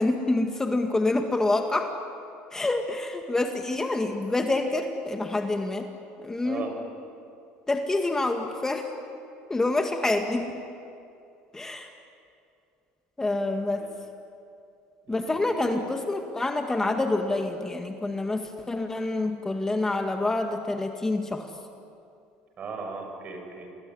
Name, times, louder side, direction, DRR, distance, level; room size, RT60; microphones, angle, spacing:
voice 1, 0.0-1.9 2.5-5.9 6.2-6.7 7.7-8.9 9.5-10.7 11.5-11.9 13.2-13.9 15.1-21.5, left 2 dB, 15° left, 4 dB, 2.0 m, -27 dB
voice 2, 15.1-15.8 22.6-23.7, right 4 dB, 45° right, 4 dB, 6.9 m, -37 dB
28.0 x 21.5 x 10.0 m, 2.6 s
supercardioid pair, 105°, 4 cm